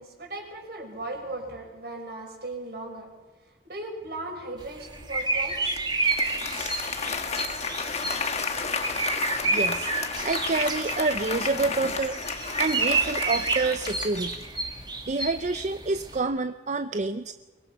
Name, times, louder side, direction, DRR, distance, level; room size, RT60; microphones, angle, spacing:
voice 1, 0.0-3.1 3.6-5.8, right 2 dB, 65° right, 2 dB, 5.5 m, -37 dB
sound 1, 4.6-16.2, right 3 dB, 25° right, 2.1 m, -30 dB
Applause, 5.6-14.6, left 5 dB, 40° left, 1.4 m, -32 dB
voice 2, 9.5-9.9 10.2-12.2 12.6-14.4 15.1-17.3, right 3 dB, 40° right, 10 dB, 0.6 m, -28 dB
23.0 x 22.5 x 5.6 m, 1.3 s
head